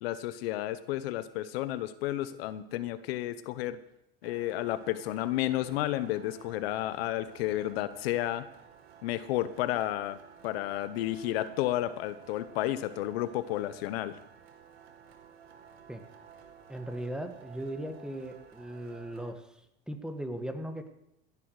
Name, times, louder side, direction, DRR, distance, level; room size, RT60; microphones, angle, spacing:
voice 1, 0.0-3.8 4.2-8.5 9.0-10.2 10.4-14.2, left 14 dB, 80° left, 14 dB, 0.9 m, -32 dB
sound 1, 4.2-19.3, right 8 dB, 90° right, 1.7 m, -54 dB
voice 2, 16.7-19.5 19.9-20.9, right 1 dB, ahead, 7 dB, 1.6 m, -38 dB
16.5 x 10.5 x 4.8 m, 0.80 s
supercardioid pair, 105°, 30 cm